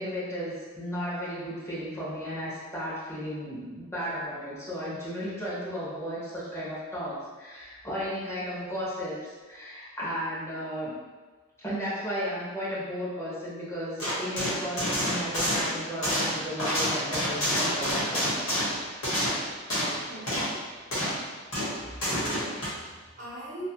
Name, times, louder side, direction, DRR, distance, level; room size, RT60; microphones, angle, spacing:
voice 1, 0.0-10.9 11.6-19.0, equal, 10° left, -9 dB, 0.8 m, -34 dB
sound 1, 14.0-20.0 20.3-20.5 20.9-21.3 21.5-22.7, equal, 65° left, 1.1 m, -28 dB
voice 2, 20.1-20.6 21.9-23.7, right 1 dB, 35° right, -6 dB, 0.6 m, -42 dB
2.6 x 2.4 x 2.8 m, 1.4 s
head